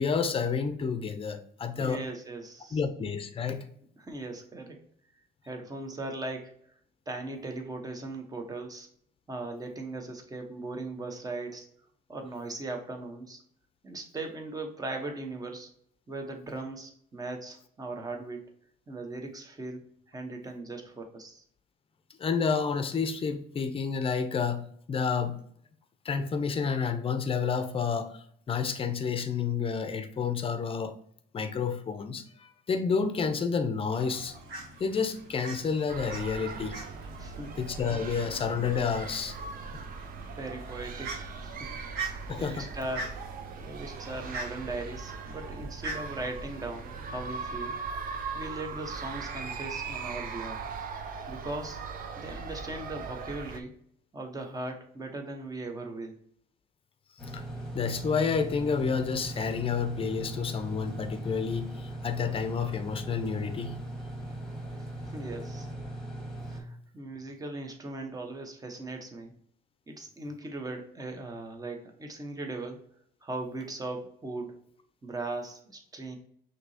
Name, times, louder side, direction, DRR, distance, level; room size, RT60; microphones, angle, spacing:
voice 1, 0.0-2.0 2.7-3.6 22.2-25.4 26.0-30.9 31.3-34.3 34.8-36.8 37.6-39.4 42.3-42.6 57.3-57.4 57.7-63.8, left 6 dB, 35° left, 9 dB, 0.6 m, -30 dB
voice 2, 1.8-2.8 4.0-4.8 5.4-6.5 7.1-8.9 9.3-11.7 12.1-13.4 13.8-15.7 16.1-18.5 18.9-21.4 37.2-37.5 40.0-47.8 48.3-50.6 51.3-51.8 52.2-53.8 54.1-56.2 65.1-65.7 66.5-69.3 69.9-72.8 73.2-74.7 75.0-76.2, right 2 dB, 20° right, 4 dB, 1.0 m, -39 dB
Fowl, 33.9-47.5, right 3 dB, 75° right, 1.5 m, -43 dB
sound 1, 35.9-53.6, right 5 dB, 55° right, 0.6 m, -39 dB
sound 2, 57.2-66.6, right 1 dB, 5° left, 1.4 m, -39 dB
5.9 x 2.9 x 2.7 m, 0.65 s
cardioid pair, 110°, 17 cm